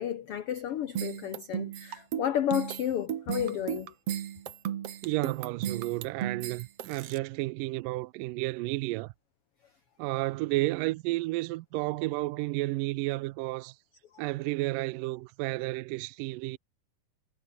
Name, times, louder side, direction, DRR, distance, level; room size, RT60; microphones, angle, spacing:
voice 1, 0.0-3.9, left 10 dB, 85° left, 1.2 m, -32 dB
sound 1, 1.0-7.2, right 10 dB, 60° right, 1.8 m, -35 dB
voice 2, 5.0-9.1 10.0-13.7 14.2-16.6, right 20 dB, 80° right, 2.1 m, -32 dB
omnidirectional pair, 4.1 m